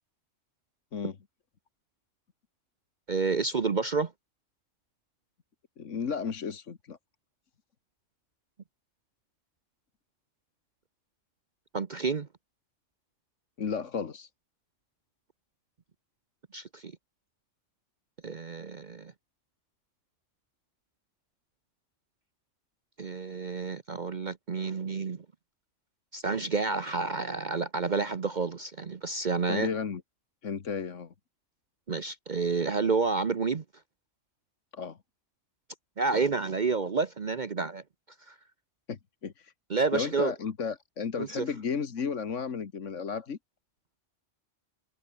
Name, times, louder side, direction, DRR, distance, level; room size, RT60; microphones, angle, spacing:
voice 1, 3.1-4.1 11.7-12.3 16.5-16.9 18.2-19.1 23.0-25.2 26.1-29.7 31.9-33.6 36.0-37.8 38.3-38.4 39.7-40.3 41.2-41.5, right 4 dB, 40° right, 1.0 m, -29 dB
voice 2, 5.8-7.0 13.6-14.3 29.5-30.0 30.4-31.1 34.7-35.0 38.9-39.5 39.9-43.4, left 6 dB, 75° left, 1.8 m, -33 dB
omnidirectional pair, 1.3 m